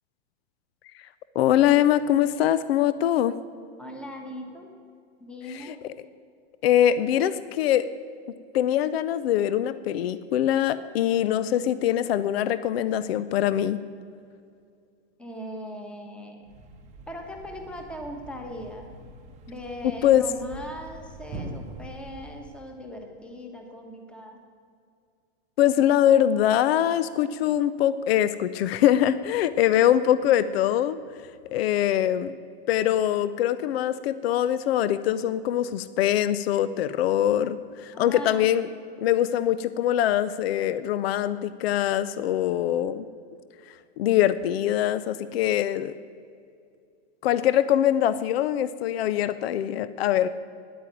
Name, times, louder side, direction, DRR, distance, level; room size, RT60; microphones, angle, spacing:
voice 1, 1.4-3.3 5.5-5.9 6.6-7.9 8.5-13.8 20.0-20.2 25.6-31.0 31.2-32.3 32.7-38.7 39.0-43.1 44.0-45.9 47.2-50.3, left 11 dB, 65° left, 15 dB, 0.6 m, -23 dB
voice 2, 3.8-4.7 5.2-5.8 15.2-16.5 17.1-18.9 19.5-24.4 37.9-38.5, equal, 5° left, 3 dB, 1.2 m, -39 dB
Thump thud, 16.4-22.6, right 2 dB, 20° right, 0.8 m, -43 dB
10.0 x 8.9 x 8.9 m, 2.4 s
supercardioid pair, 155°, 33 cm